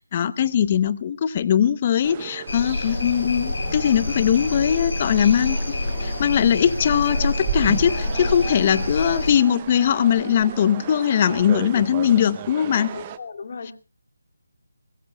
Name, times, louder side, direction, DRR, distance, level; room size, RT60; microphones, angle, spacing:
voice 1, 0.1-5.6 6.0-12.9 13.7-13.8, left 9 dB, 30° left, 16 dB, 0.8 m, -20 dB
sound 1, 2.0-13.2, right 9 dB, 20° right, 0.7 m, -34 dB
sound 2, 2.5-9.3, left 2 dB, 70° left, 6.5 m, -27 dB
voice 2, 12.9-13.7, left 5 dB, 45° left, 4 dB, 2.6 m, -36 dB
22.0 x 20.0 x 2.3 m, 0.32 s
figure-of-eight pair, 165°, 0 cm